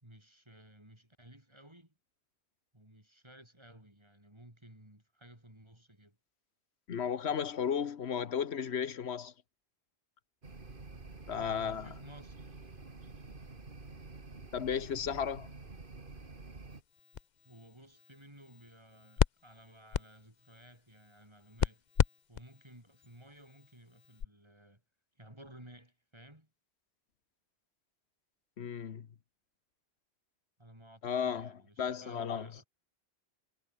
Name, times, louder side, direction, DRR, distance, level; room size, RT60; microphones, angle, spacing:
voice 1, 0.0-2.0 2.7-6.2 11.4-12.6 17.4-21.8 22.3-24.8 25.2-26.5 30.6-32.7, right 1 dB, 25° right, 4.8 m, -56 dB
voice 2, 6.9-9.3 11.3-11.9 14.5-15.5 28.6-29.1 31.0-31.5 31.8-32.5, left 7 dB, 85° left, 1.3 m, -34 dB
sound 1, 10.4-16.8, right 3 dB, 55° right, 2.5 m, -49 dB
sound 2, 16.7-24.3, left 8 dB, 50° left, 0.8 m, -36 dB
omnidirectional pair, 1.1 m